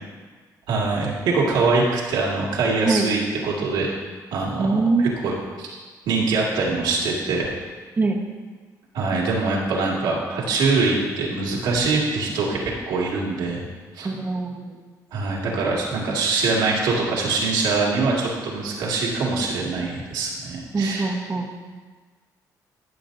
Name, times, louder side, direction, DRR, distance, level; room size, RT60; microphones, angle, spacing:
voice 1, 0.7-3.9 4.3-5.7 6.1-7.5 8.9-12.6 12.9-13.6 13.9-14.1 15.1-21.1, right 3 dB, 90° right, -4 dB, 2.1 m, -23 dB
voice 2, 4.6-5.1 8.0-8.2 14.0-14.8 20.7-21.5, right 3 dB, 25° right, 2 dB, 1.2 m, -23 dB
14.0 x 7.1 x 2.7 m, 1.4 s
cardioid pair, 100°, 7 cm